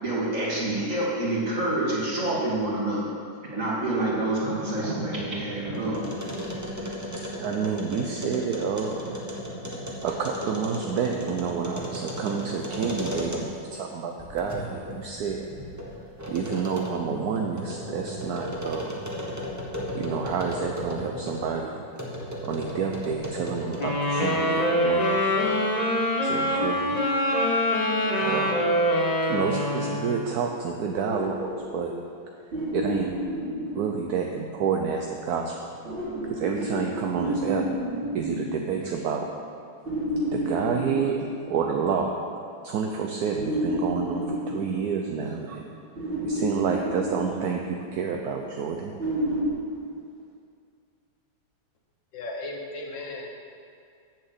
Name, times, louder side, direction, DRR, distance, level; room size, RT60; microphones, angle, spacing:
voice 1, 0.0-3.0 3.5-6.0, right 2 dB, 40° right, -6 dB, 2.5 m, -27 dB
sound 1, 4.8-13.7 14.2-21.5 22.0-24.1, equal, 10° right, 0.8 m, -35 dB
voice 2, 7.3-9.1 10.0-15.5 16.3-19.1 19.9-21.8 22.4-25.6 26.2-27.0 28.1-28.7 29.3-31.9 32.5-33.1 33.7-35.5 36.0-37.6 38.1-39.2 40.3-42.1 42.6-45.6 46.2-48.9, right 6 dB, 65° right, 2 dB, 1.0 m, -29 dB
sound 2, 23.8-30.3, equal, 25° left, 1.0 m, -24 dB
sound 3, 30.9-34.6 35.9-39.2 39.9-42.0 43.4-45.5 46.0-48.0 49.0-49.5, equal, 80° right, 3.5 m, -31 dB
voice 3, 52.1-53.3, left 2 dB, 70° left, 1 dB, 2.0 m, -36 dB
7.6 x 7.3 x 7.8 m, 2.3 s
omnidirectional pair, 2.1 m